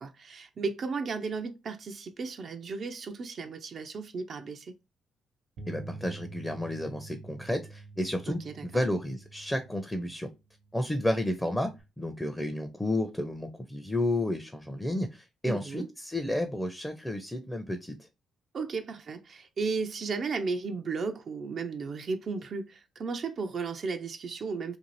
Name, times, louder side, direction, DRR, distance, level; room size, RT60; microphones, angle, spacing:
voice 1, 0.0-4.7 8.3-8.8 15.4-15.9 18.5-24.8, right 4 dB, 50° right, 0.3 m, -34 dB
Bass guitar, 5.6-11.8, right 3 dB, 70° right, 0.8 m, -48 dB
voice 2, 5.7-10.3 10.7-11.7 12.0-17.9, left 1 dB, 10° left, 0.5 m, -31 dB
2.6 x 2.5 x 3.0 m
hypercardioid pair, 45°, 0 cm